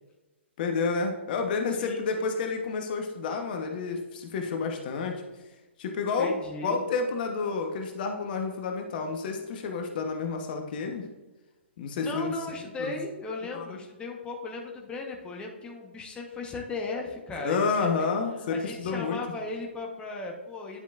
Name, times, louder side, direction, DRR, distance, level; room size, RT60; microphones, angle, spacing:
voice 1, 0.6-5.2 5.8-6.4 6.6-11.1 11.8-12.3 12.8-12.9 13.5-13.8 17.4-19.2, left 4 dB, 50° left, 4 dB, 1.0 m, -30 dB
voice 2, 1.8-2.3 6.2-6.8 12.0-18.1 18.5-20.8, left 3 dB, 15° left, 0 dB, 1.0 m, -37 dB
10.0 x 5.1 x 2.5 m, 1.1 s
figure-of-eight pair, 125°, 7 cm